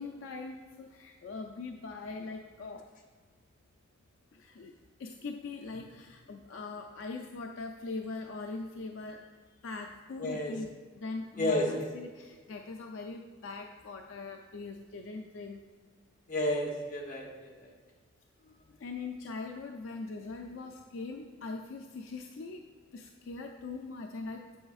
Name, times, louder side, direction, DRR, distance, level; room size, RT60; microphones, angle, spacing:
voice 1, 0.0-2.9 4.3-4.7 5.0-9.3 9.6-15.7 18.4-24.6, left 3 dB, 70° left, 3 dB, 0.4 m, -41 dB
voice 2, 10.2-10.5 11.4-11.9 16.3-17.5, left 1 dB, 40° left, -2 dB, 1.1 m, -31 dB
7.7 x 6.9 x 2.4 m, 1.5 s
head